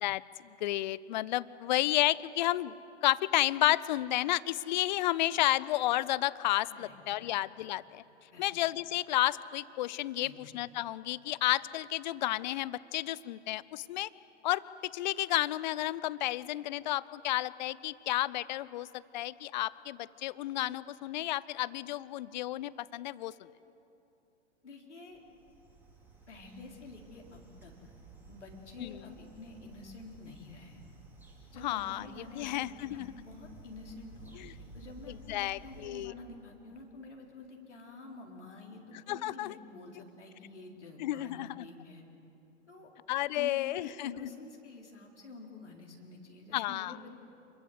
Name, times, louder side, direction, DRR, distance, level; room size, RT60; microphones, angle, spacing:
voice 1, 0.0-2.7 3.0-8.0 8.4-14.1 14.4-23.3 28.8-29.0 31.6-32.0 32.3-33.1 34.4-34.5 35.3-36.1 39.1-39.6 41.0-41.6 43.1-44.3 46.5-46.9, left 15 dB, 40° left, 20 dB, 0.7 m, -31 dB
voice 2, 6.7-7.3 7.6-7.7 8.3-8.4 10.2-10.4 24.6-25.2 26.3-27.9 28.3-30.8 31.5-42.0 42.7-42.9 43.4-47.1, left 3 dB, 75° left, 0 dB, 4.5 m, -49 dB
sound 1, 25.1-35.9, right 3 dB, 5° right, 4.3 m, -54 dB
29.0 x 22.0 x 8.1 m, 2.9 s
figure-of-eight pair, 100°, 35 cm